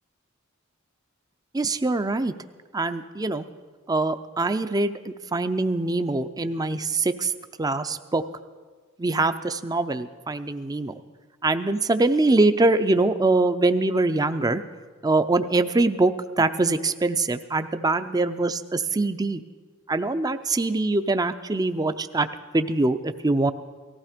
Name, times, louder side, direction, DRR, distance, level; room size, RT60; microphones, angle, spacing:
voice 1, 1.5-2.3 2.7-3.5 3.9-7.3 7.6-8.2 9.0-10.9 11.4-14.6 15.0-19.4 19.9-22.3 22.5-23.5, right 2 dB, 20° right, 10 dB, 0.5 m, -23 dB
18.0 x 15.0 x 5.1 m, 1.4 s
head